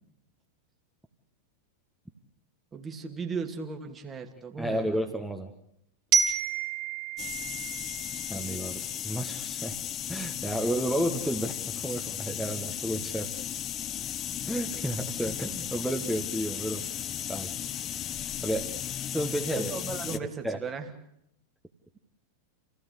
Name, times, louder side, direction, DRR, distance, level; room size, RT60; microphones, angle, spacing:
voice 1, 2.7-5.0 19.6-20.9, right 5 dB, 20° right, 4 dB, 2.5 m, -36 dB
voice 2, 4.6-5.5 8.3-9.8 10.1-13.3 14.5-16.8 17.3-17.5 18.4-18.7 19.1-19.7 20.1-20.2 20.4-20.6, right 1 dB, ahead, 2 dB, 1.7 m, -31 dB
Glockenspiel, 6.1-9.0, right 6 dB, 40° right, 3.6 m, -30 dB
sound 1, 7.2-20.2, left 10 dB, 30° left, 0.9 m, -35 dB
28.5 x 16.5 x 8.4 m, 0.76 s
figure-of-eight pair, 90°, 0 cm